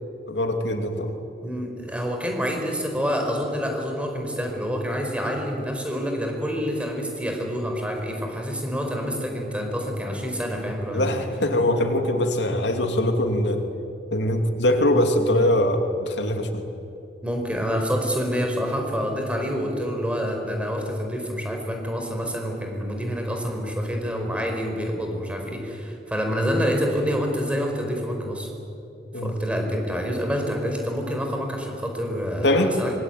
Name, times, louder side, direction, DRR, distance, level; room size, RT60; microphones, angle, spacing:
voice 1, 0.3-1.2 10.9-13.6 14.1-16.6 29.1-29.3 32.4-32.8, left 1 dB, 90° left, 5 dB, 2.7 m, -22 dB
voice 2, 1.4-11.2 17.2-28.5 29.2-32.9, equal, 5° right, 2 dB, 4.8 m, -27 dB
25.5 x 22.0 x 9.4 m, 2.8 s
head